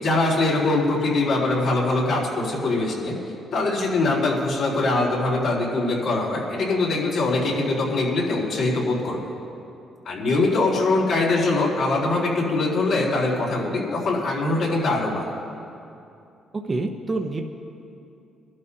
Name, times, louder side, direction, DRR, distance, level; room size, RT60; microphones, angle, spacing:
voice 1, 0.0-3.2 3.5-9.2 10.0-15.2, left 2 dB, 70° left, -4 dB, 4.0 m, -22 dB
voice 2, 16.7-17.4, right 2 dB, 30° right, 3 dB, 0.9 m, -27 dB
24.5 x 12.0 x 2.8 m, 2.7 s
cardioid pair, 90°, 0 cm